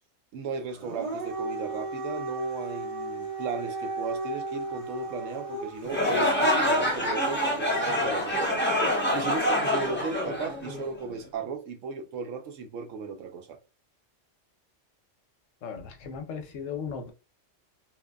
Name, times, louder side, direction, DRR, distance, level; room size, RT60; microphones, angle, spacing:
voice 1, 0.3-13.6, right 4 dB, 85° right, 1.0 m, -36 dB
Dog, 0.8-6.0, right 2 dB, 55° right, 0.3 m, -34 dB
sound 1, 5.8-11.1, equal, 10° left, 0.7 m, -26 dB
voice 2, 15.6-17.1, left 6 dB, 85° left, 1.0 m, -36 dB
3.2 x 2.1 x 2.2 m
omnidirectional pair, 1.3 m